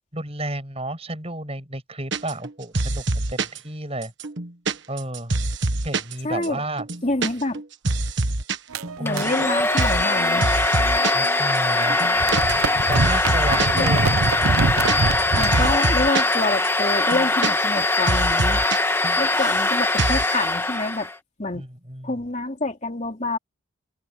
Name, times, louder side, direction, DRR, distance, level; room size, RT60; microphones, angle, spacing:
voice 1, 0.1-4.1 4.9-5.3 5.8-6.9 9.0-9.3 11.1-12.0 12.7-14.2 21.5-22.1, right 1 dB, 30° right, 6.1 m, -31 dB
sound 1, 2.1-2.5 2.7-3.6 4.0-6.1 6.4-6.5 6.8-7.3 7.5-8.6 8.8-9.4 9.8-10.1 10.4-11.3 11.5-11.6 11.9-12.7 13.0-13.8 14.2-16.4 16.6-16.7 17.0-17.8 18.1-18.8 19.0-19.7 20.0-20.3, right 2 dB, 55° right, 1.5 m, -25 dB
voice 2, 6.2-6.6 7.0-7.6 9.0-10.5 13.7-14.2 15.3-18.7 19.2-21.1 21.4-21.6 22.0-23.4, left 2 dB, 35° left, 3.0 m, -27 dB
sound 2, 8.7-11.4 11.7-15.7, right 4 dB, 85° right, 0.8 m, -26 dB
Domestic sounds home sounds, 9.1-21.2, left 2 dB, 10° left, 1.4 m, -22 dB
head